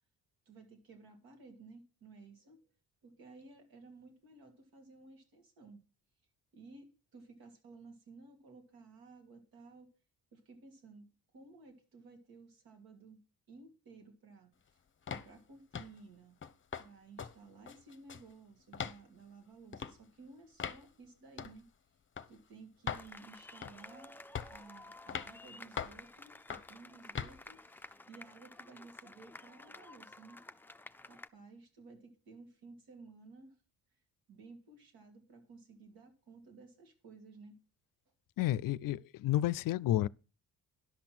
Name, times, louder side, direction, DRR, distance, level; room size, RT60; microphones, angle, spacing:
voice 1, 0.5-2.7 3.0-5.8 6.5-9.9 10.3-13.2 13.5-14.8 15.1-16.4 16.8-21.7 22.3-24.2 24.5-30.4 31.1-33.6 34.3-37.6, right 3 dB, 80° right, 2.6 m, -56 dB
sound 1, 15.1-15.3 15.7-16.0 16.4-16.9 17.2-17.3 17.7-18.3 18.7-19.0 19.7-20.0 20.6-20.8 21.4-21.6 22.2-22.3 22.9-23.1 23.6-23.9 24.4-24.6 25.1-25.3 25.8-26.0 26.5-26.7 27.2-27.4, left 7 dB, 35° left, 0.8 m, -40 dB
sound 2, 22.9-31.3, left 2 dB, 5° left, 0.4 m, -53 dB
voice 2, 38.4-40.1, left 14 dB, 65° left, 0.5 m, -31 dB
11.0 x 5.9 x 6.0 m
cardioid pair, 75°, 35 cm